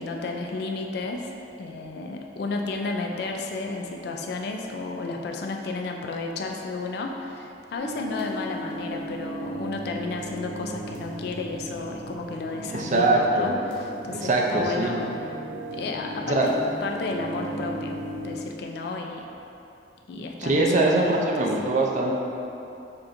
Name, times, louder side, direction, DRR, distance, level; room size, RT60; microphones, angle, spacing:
voice 1, 0.0-1.3 1.6-15.1 15.7-16.5 16.8-18.0 18.2-19.2 20.1-21.3, left 3 dB, 60° left, 1 dB, 0.3 m, -32 dB
sound 1, 7.8-18.4, right 1 dB, 75° right, 1.0 m, -36 dB
voice 2, 12.7-13.6 14.2-15.0 16.3-16.5 20.4-22.2, right 2 dB, 40° right, 0 dB, 0.5 m, -22 dB
6.3 x 2.9 x 2.5 m, 2.8 s
head